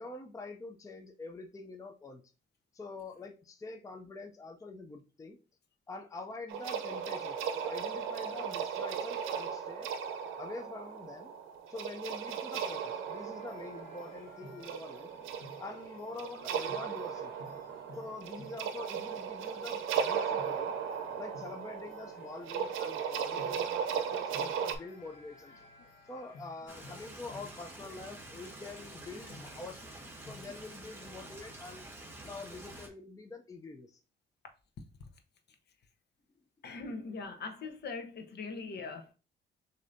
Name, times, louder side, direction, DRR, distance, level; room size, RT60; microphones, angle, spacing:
voice 1, 0.0-2.2 2.7-5.4 5.9-9.9 10.4-11.3 11.7-15.1 15.6-17.3 17.9-20.7 21.2-25.5 26.0-29.9 30.2-31.8 32.2-34.0, left 3 dB, 15° left, 0.5 m, -45 dB
sound 1, 6.5-24.7, right 7 dB, 85° right, 0.6 m, -37 dB
sound 2, 13.1-31.1, left 2 dB, 85° left, 1.1 m, -56 dB
Stream, 26.7-32.9, right 1 dB, 10° right, 1.3 m, -48 dB
voice 2, 36.6-39.1, left 4 dB, 55° left, 0.8 m, -41 dB
6.5 x 2.7 x 2.6 m
cardioid pair, 90°, 20 cm